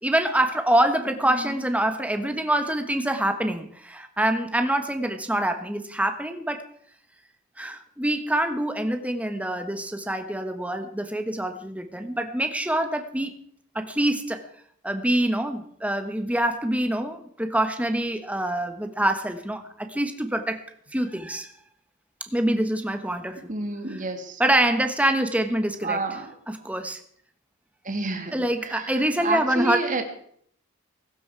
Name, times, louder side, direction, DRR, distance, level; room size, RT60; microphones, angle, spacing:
voice 1, 0.0-6.6 7.6-13.3 13.7-14.5 14.8-20.6 20.9-21.5 22.2-23.4 24.4-26.0 26.5-27.0 28.3-29.8, right 1 dB, 5° right, 7 dB, 1.4 m, -25 dB
voice 2, 1.2-1.6 23.4-24.4 25.8-26.3 27.8-30.0, right 3 dB, 35° right, 6 dB, 2.3 m, -30 dB
22.0 x 12.5 x 4.7 m, 0.64 s
head